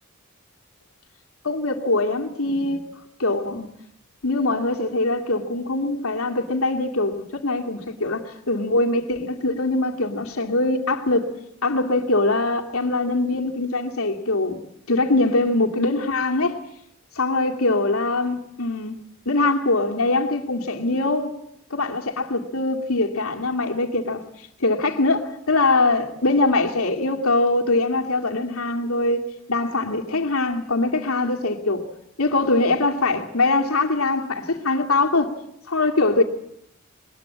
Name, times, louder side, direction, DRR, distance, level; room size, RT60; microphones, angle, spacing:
voice 1, 1.4-2.8 3.2-3.7 4.2-11.3 11.6-14.6 14.9-16.6 17.2-19.0 19.3-21.3 21.7-24.2 24.6-29.2 29.5-31.8 32.2-35.3 35.7-36.2, left 2 dB, 80° left, 2.5 m, -22 dB
21.0 x 20.5 x 8.6 m
head